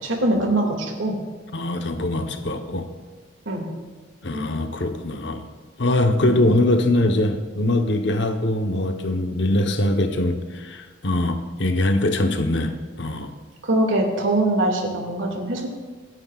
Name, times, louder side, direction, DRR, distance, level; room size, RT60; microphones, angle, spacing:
voice 1, 0.0-1.2 3.5-3.7 6.2-6.4 13.6-15.7, right 1 dB, 70° right, 1 dB, 2.1 m, -22 dB
voice 2, 1.5-2.9 4.2-5.4 5.8-12.7 13.0-13.3, left 1 dB, 55° left, 6 dB, 0.9 m, -22 dB
26.5 x 9.7 x 2.4 m, 1.4 s
head